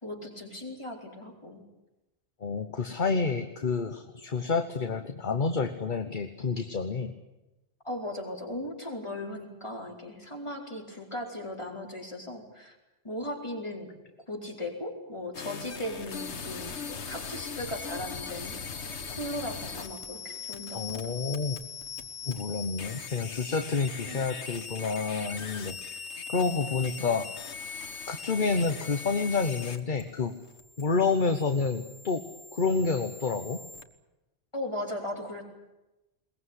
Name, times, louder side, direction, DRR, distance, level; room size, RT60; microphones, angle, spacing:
voice 1, 0.0-1.6 7.8-12.8 13.0-13.9 14.3-18.6 19.2-21.1 24.1-24.2 34.5-35.4, left 1 dB, 25° left, 0 dB, 4.6 m, -37 dB
voice 2, 2.4-7.1 20.7-21.6 22.3-26.0 26.3-27.3 28.1-30.3 30.8-32.2 32.5-33.6, left 4 dB, 50° left, 7 dB, 1.3 m, -29 dB
sound 1, 15.3-33.8, left 5 dB, 90° left, 1.7 m, -40 dB
21.5 x 20.0 x 9.8 m, 0.99 s
omnidirectional pair, 1.1 m